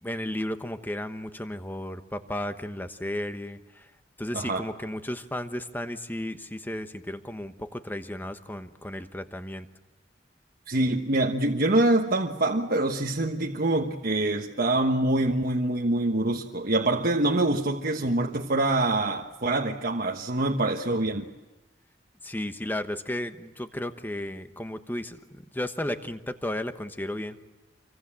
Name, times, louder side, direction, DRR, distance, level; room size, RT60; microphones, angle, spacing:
voice 1, 0.0-3.9 4.2-9.7 22.2-27.4, left 1 dB, 10° left, 9 dB, 1.1 m, -34 dB
voice 2, 4.3-4.6 10.7-21.2, right 2 dB, 50° right, 1 dB, 1.3 m, -25 dB
27.0 x 24.0 x 7.6 m, 1.1 s
head